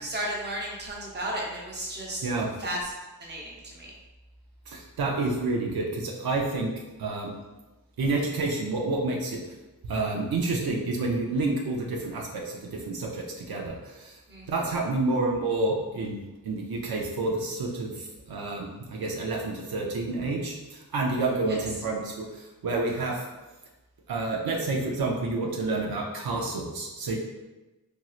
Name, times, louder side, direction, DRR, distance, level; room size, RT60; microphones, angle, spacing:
voice 1, 0.0-2.3 2.6-2.9 3.2-4.0 14.3-14.5 21.5-21.6, right 1 dB, 30° right, -3 dB, 0.8 m, -34 dB
voice 2, 4.7-6.7 7.0-7.4 8.0-9.4 9.8-14.2 14.5-23.2 24.1-27.2, right 2 dB, 80° right, -1 dB, 0.5 m, -29 dB
2.9 x 2.7 x 2.3 m, 1.1 s
wide cardioid pair, 80°, 35 cm